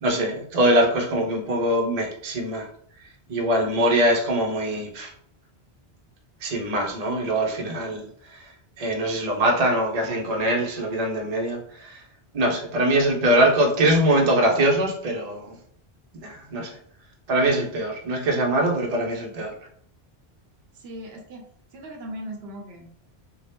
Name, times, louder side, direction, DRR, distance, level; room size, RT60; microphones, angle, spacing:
voice 1, 0.0-2.7 3.3-5.1 6.4-8.4 8.8-12.0 12.3-15.6 16.2-16.8 17.3-19.5, right 1 dB, 45° right, 0 dB, 0.6 m, -23 dB
voice 2, 20.7-21.5 21.7-23.1, equal, 80° right, 2 dB, 0.9 m, -38 dB
2.7 x 2.1 x 3.3 m, 0.63 s
omnidirectional pair, 1.1 m